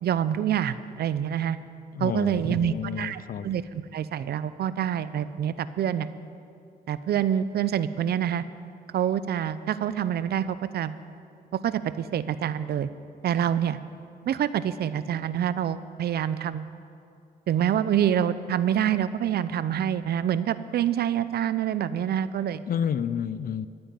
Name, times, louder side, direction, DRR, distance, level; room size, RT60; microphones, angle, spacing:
voice 1, 0.0-1.6 2.0-6.1 6.9-8.4 8.9-11.0 11.5-12.9 13.2-13.8 14.3-16.7 17.5-22.6, right 9 dB, 75° right, 14 dB, 0.6 m, -26 dB
voice 2, 1.9-3.5 22.7-23.7, left 8 dB, 60° left, 16 dB, 0.5 m, -30 dB
14.5 x 8.9 x 9.0 m, 2.4 s
cardioid pair, 105°, 16 cm